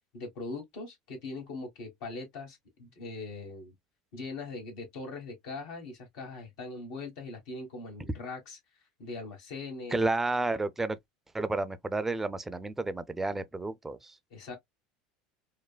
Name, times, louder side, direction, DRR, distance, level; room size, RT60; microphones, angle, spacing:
voice 1, 0.1-3.7 4.1-8.6 9.0-10.0 14.3-14.5, left 3 dB, 70° left, 1.3 m, -41 dB
voice 2, 9.9-11.0 11.3-14.1, right 2 dB, 10° right, 0.4 m, -31 dB
3.2 x 2.1 x 2.2 m
supercardioid pair, 100°, 3 cm